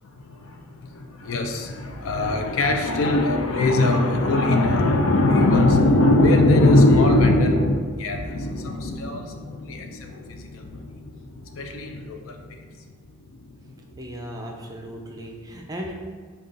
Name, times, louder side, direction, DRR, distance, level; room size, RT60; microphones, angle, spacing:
voice 1, 0.0-12.9 13.2-13.9, left 2 dB, 75° left, 4 dB, 0.5 m, -21 dB
voice 2, 14.0-15.9, equal, 20° right, 1 dB, 0.4 m, -36 dB
5.3 x 2.3 x 3.7 m, 1.5 s
head